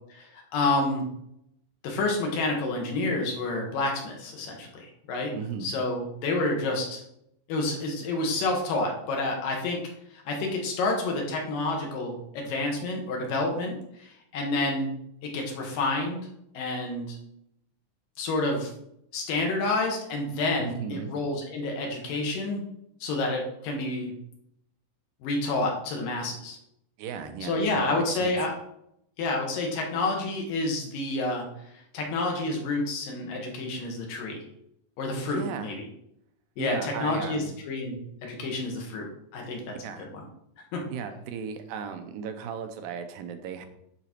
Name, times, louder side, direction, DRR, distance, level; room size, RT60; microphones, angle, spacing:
voice 1, 0.5-1.0 1.8-5.3 5.6-7.0 7.5-9.8 10.1-14.9 15.2-16.2 16.5-17.2 18.2-18.7 19.1-22.6 23.0-24.1 25.2-26.6 27.4-28.5 29.2-31.5 31.9-34.5 35.0-35.9 36.6-40.2 40.7-40.8, left 2 dB, 75° left, 1 dB, 3.0 m, -29 dB
voice 2, 5.4-5.7 20.6-21.1 27.0-28.3 35.3-35.7 36.6-37.5 39.8-40.1 40.9-43.7, right 6 dB, 85° right, 7 dB, 2.4 m, -36 dB
10.0 x 4.0 x 4.5 m, 0.77 s
omnidirectional pair, 4.0 m